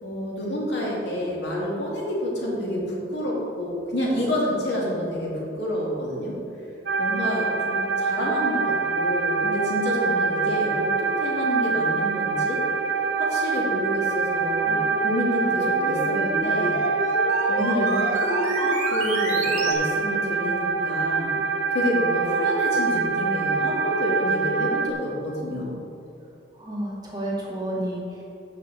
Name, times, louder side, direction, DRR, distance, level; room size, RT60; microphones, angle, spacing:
voice 1, 0.0-6.4 7.0-12.6 13.2-16.8 17.5-21.3 21.7-25.8, equal, 70° left, -4 dB, 2.3 m, -28 dB
sound 1, 6.9-24.9, right 4 dB, 65° right, 0.7 m, -25 dB
sound 2, 14.6-19.7, right 1 dB, 35° right, 1.6 m, -31 dB
voice 2, 26.5-28.2, right 1 dB, 20° right, -5 dB, 1.6 m, -30 dB
14.5 x 5.8 x 3.5 m, 2.8 s
head